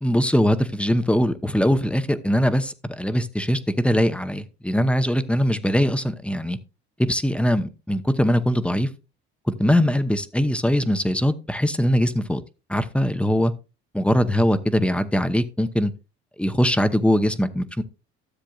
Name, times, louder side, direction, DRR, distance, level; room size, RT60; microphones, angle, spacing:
voice 1, 0.0-6.6 7.0-8.9 9.6-12.4 12.7-13.5 13.9-15.9 16.4-17.8, equal, 5° left, 10 dB, 0.9 m, -21 dB
13.5 x 7.4 x 2.4 m, 0.30 s
supercardioid pair, 70°, 32 cm